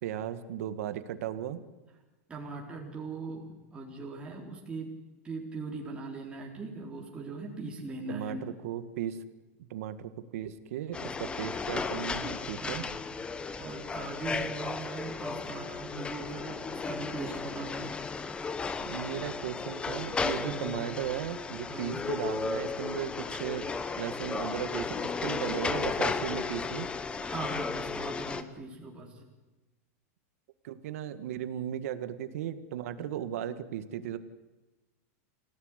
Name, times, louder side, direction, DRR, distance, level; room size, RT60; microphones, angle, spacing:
voice 1, 0.0-1.6 8.1-9.2 9.6-12.8 18.8-23.7 24.0-26.9 30.6-34.2, right 10 dB, 65° right, 11 dB, 1.9 m, -36 dB
voice 2, 2.3-4.9 5.2-8.5 12.5-12.9 13.3-18.0 20.4-20.7 21.7-22.0 27.2-29.2 33.0-33.1, right 3 dB, 15° right, -2 dB, 4.1 m, -40 dB
sound 1, 10.9-28.4, left 4 dB, 10° left, 1.1 m, -34 dB
26.0 x 17.5 x 9.9 m, 1.1 s
supercardioid pair, 155°, 8 cm